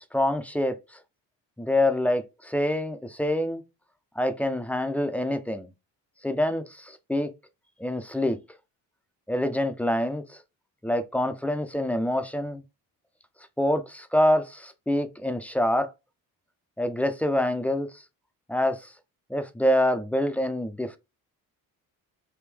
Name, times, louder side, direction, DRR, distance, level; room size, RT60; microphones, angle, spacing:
voice 1, 0.1-0.8 1.6-3.6 4.2-5.7 6.2-7.3 7.8-8.4 9.3-10.4 10.8-12.6 13.6-15.9 16.8-18.0 18.5-18.9 19.3-21.0, left 1 dB, 5° left, 0.3 m, -26 dB
3.4 x 2.6 x 3.3 m
supercardioid pair, 85°, 38 cm